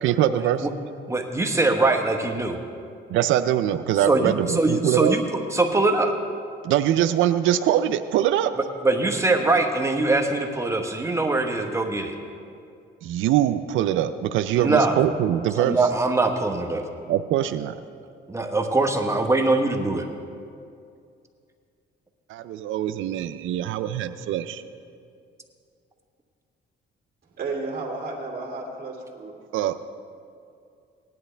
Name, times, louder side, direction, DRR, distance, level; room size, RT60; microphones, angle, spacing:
voice 1, 0.0-0.7 3.1-5.1 6.6-8.5 13.0-15.8 17.1-17.7 22.3-24.6 29.5-29.8, right 11 dB, 85° right, 11 dB, 0.4 m, -23 dB
voice 2, 1.1-2.6 4.1-5.2 5.5-6.1 8.8-12.1 14.6-15.0 15.6-16.8 18.3-20.1, right 2 dB, 15° right, 4 dB, 1.2 m, -22 dB
voice 3, 27.4-29.4, right 3 dB, 50° right, -3 dB, 2.3 m, -32 dB
17.5 x 10.5 x 3.3 m, 2.4 s
cardioid pair, 90°, 20 cm